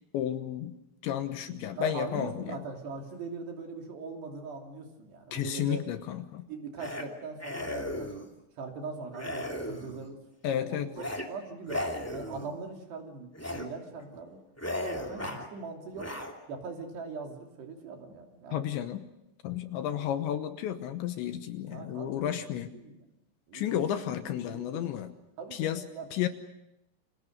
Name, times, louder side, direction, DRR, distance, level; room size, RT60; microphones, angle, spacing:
voice 1, 0.1-0.8 1.0-2.6 5.3-6.5 10.4-10.9 18.5-19.1 19.4-22.7 23.5-25.1 25.5-25.8 26.1-26.3, left 10 dB, 75° left, 9 dB, 3.1 m, -32 dB
voice 2, 1.5-5.8 6.5-8.2 8.6-10.2 10.5-14.4 14.9-16.1 16.5-18.7 21.7-23.1 23.5-23.8 24.4-25.0 25.4-26.1, right 4 dB, 60° right, 2 dB, 4.8 m, -41 dB
sound 1, 6.8-7.1 7.4-8.3 9.1-10.1 10.9-11.3 11.6-12.5 13.3-13.7 14.0-14.2 14.6-15.5 15.9-16.3, left 1 dB, 15° left, 0.5 m, -36 dB
29.5 x 26.0 x 6.6 m, 0.89 s
omnidirectional pair, 5.8 m